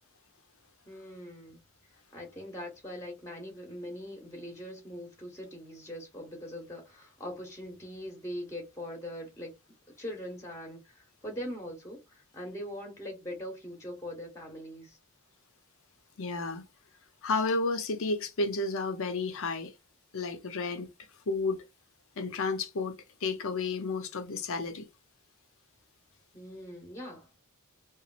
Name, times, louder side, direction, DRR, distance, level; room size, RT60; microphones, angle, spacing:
voice 1, 0.9-1.6 2.1-9.5 10.0-15.0 26.3-27.3, equal, 15° left, 0.9 m, -42 dB
voice 2, 16.2-16.6 17.2-19.7 20.1-20.9 21.3-21.6 22.2-23.0 23.2-24.9, left 3 dB, 65° left, 0.7 m, -31 dB
3.0 x 2.5 x 2.4 m
head